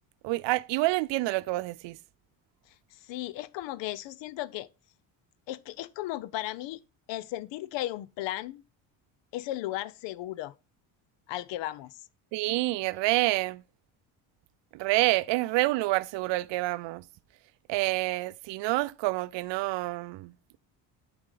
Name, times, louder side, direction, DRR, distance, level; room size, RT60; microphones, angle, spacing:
voice 1, 0.2-2.0 12.3-13.6 14.7-17.0 17.7-20.6, right 20 dB, 65° right, 0.5 m, -28 dB
voice 2, 2.9-4.7 5.5-6.8 7.1-8.6 9.3-10.5 11.3-12.0, left 15 dB, 65° left, 0.6 m, -35 dB
9.6 x 5.0 x 3.9 m
supercardioid pair, 95°, 48 cm